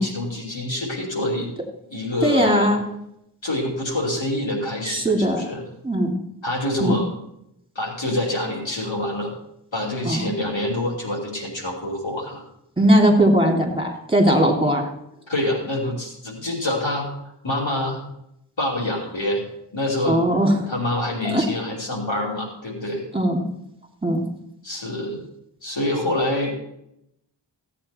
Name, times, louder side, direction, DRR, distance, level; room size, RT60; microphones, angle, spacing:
voice 1, 0.0-1.5 1.9-2.7 3.4-5.6 6.4-7.1 7.7-9.4 9.7-12.4 15.3-17.1 17.4-18.0 18.6-19.4 19.7-20.2 20.7-23.0 24.6-25.2 25.6-26.5, left 1 dB, 90° left, -2 dB, 3.0 m, -26 dB
voice 2, 2.2-2.8 4.9-5.4 5.8-6.1 6.8-7.0 10.0-10.2 12.8-14.9 20.1-20.6 21.2-21.4 23.1-23.4 24.0-24.2, right 1 dB, 10° right, 1 dB, 2.7 m, -19 dB
15.5 x 8.4 x 4.4 m, 0.78 s
wide cardioid pair, 40°, 44 cm